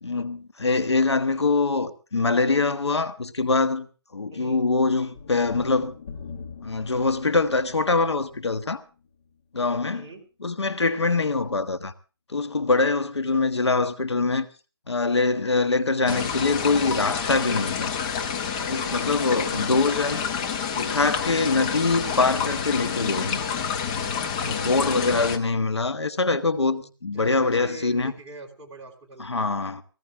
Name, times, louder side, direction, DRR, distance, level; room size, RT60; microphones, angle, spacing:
voice 1, 0.0-3.9 4.1-5.9 6.6-8.8 9.5-10.0 10.4-11.9 12.3-14.5 14.9-17.9 18.6-20.3 20.8-23.4 24.4-28.1 29.2-29.8, left 3 dB, 75° left, 1.5 m, -24 dB
voice 2, 4.3-4.6 9.9-10.2 13.3-13.5 19.2-19.7 24.5-24.9 26.6-29.4, right 1 dB, 15° right, 3.4 m, -43 dB
sound 1, 5.1-9.4, left 5 dB, 30° left, 1.8 m, -42 dB
sound 2, 16.1-25.4, left 7 dB, 15° left, 0.9 m, -28 dB
19.0 x 16.5 x 3.6 m
figure-of-eight pair, 160°, 14 cm